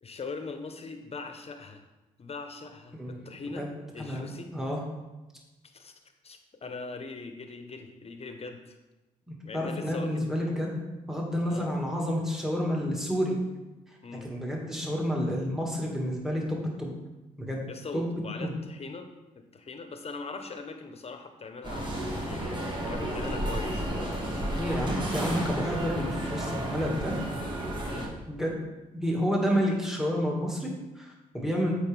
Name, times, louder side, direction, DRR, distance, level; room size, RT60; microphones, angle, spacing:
voice 1, 0.0-1.8 2.2-3.7 3.9-4.5 5.7-5.9 6.2-8.8 9.4-10.2 11.5-11.7 14.0-14.2 17.7-19.1 19.3-24.4 27.8-28.1, left 4 dB, 40° left, 6 dB, 1.1 m, -41 dB
voice 2, 2.9-3.3 3.6-3.7 4.0-4.3 4.5-4.8 9.3-10.8 11.1-13.4 14.2-16.9 17.4-17.6 17.9-18.1 18.4-18.6 24.5-27.2 28.3-28.6 28.9-31.7, equal, 5° right, -2 dB, 2.2 m, -30 dB
sound 1, 21.6-28.1, right 1 dB, 30° right, 1.9 m, -32 dB
8.1 x 4.8 x 3.5 m, 1.1 s
supercardioid pair, 55°, 16 cm